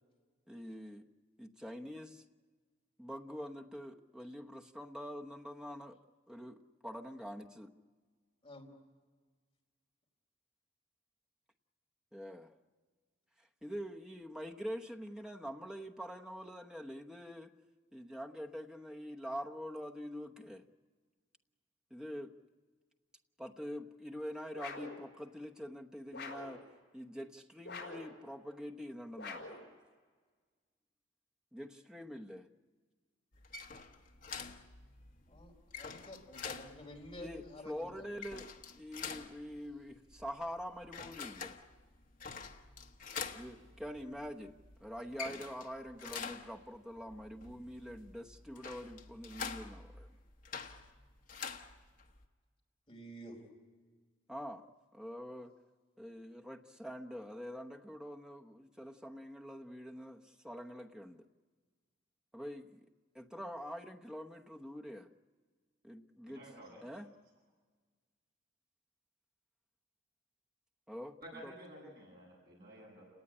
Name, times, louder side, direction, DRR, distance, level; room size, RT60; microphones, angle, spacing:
voice 1, 0.5-1.0 1.4-2.2 3.0-6.0 6.3-7.7 12.1-12.5 13.4-17.5 17.9-20.6 21.9-22.3 23.4-26.6 26.9-29.7 31.5-32.5 37.2-41.6 43.3-50.1 54.3-54.7 54.9-55.5 56.0-61.3 62.3-62.9 63.1-65.1 65.8-66.4 66.8-67.1 70.9-71.2 71.4-71.5, equal, 5° right, 1.0 m, -45 dB
sound 1, 24.6-25.0 26.1-26.6 27.6-28.1 29.2-29.7, left 3 dB, 60° left, 4.7 m, -45 dB
sound 2, 33.3-52.3, left 6 dB, 40° left, 1.2 m, -47 dB
voice 2, 35.3-38.1 52.9-53.4, equal, 25° left, 4.3 m, -50 dB
voice 3, 66.2-66.8 71.2-73.0, right 1 dB, 50° right, 7.7 m, -52 dB
30.0 x 18.5 x 9.9 m
head